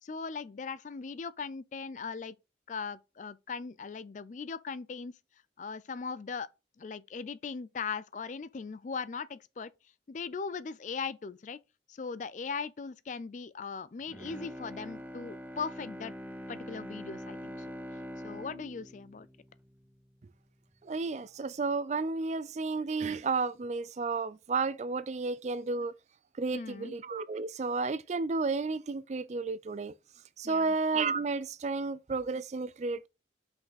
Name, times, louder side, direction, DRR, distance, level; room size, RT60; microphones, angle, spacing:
voice 1, 0.0-2.4 2.7-5.1 5.6-6.5 6.8-9.7 10.1-11.6 11.9-16.1 16.5-17.7 18.2-19.3 26.5-26.9 30.4-30.8, left 5 dB, 40° left, 0.4 m, -39 dB
Bowed string instrument, 14.0-20.3 20.7-20.8, equal, 10° right, 0.7 m, -44 dB
voice 2, 20.8-25.9 26.4-29.9 30.4-33.1, right 4 dB, 40° right, 0.4 m, -32 dB
5.9 x 5.3 x 4.0 m
head